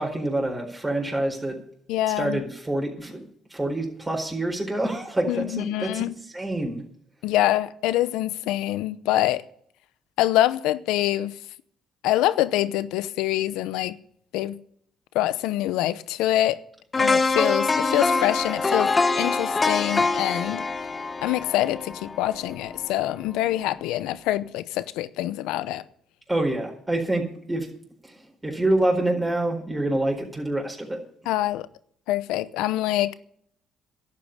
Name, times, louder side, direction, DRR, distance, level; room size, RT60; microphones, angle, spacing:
voice 1, 0.0-1.6 2.2-3.2 3.5-6.8 26.3-27.7 28.0-28.1 28.4-31.0, right 1 dB, 15° right, 4.4 m, -26 dB
voice 2, 1.9-2.4 5.3-6.1 7.2-9.4 10.2-11.3 12.0-14.0 14.3-14.6 15.1-16.6 17.0-20.6 21.2-25.8 31.3-31.7 32.1-33.1, left 14 dB, 90° left, 0.7 m, -25 dB
sound 1, 16.9-22.9 23.3-23.5, left 3 dB, 30° left, 0.9 m, -24 dB
11.5 x 8.6 x 8.5 m
supercardioid pair, 75°, 0 cm